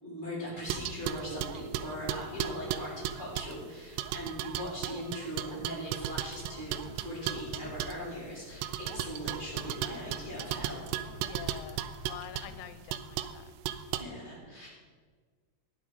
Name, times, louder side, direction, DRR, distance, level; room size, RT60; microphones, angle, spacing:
voice 1, 0.0-11.0 14.0-14.7, equal, 10° right, -7 dB, 3.3 m, -40 dB
sound 1, 0.7-3.6 4.0-8.0 8.6-12.5 12.9-13.4 13.7-14.0, right 11 dB, 85° right, 2.6 m, -35 dB
sound 2, 6.3-12.7, left 4 dB, 60° left, 1.0 m, -52 dB
voice 2, 11.3-11.8 12.1-13.5 13.9-14.0, left 12 dB, 90° left, 12 dB, 2.8 m, -46 dB
11.5 x 9.6 x 5.0 m, 1.5 s
omnidirectional pair, 4.9 m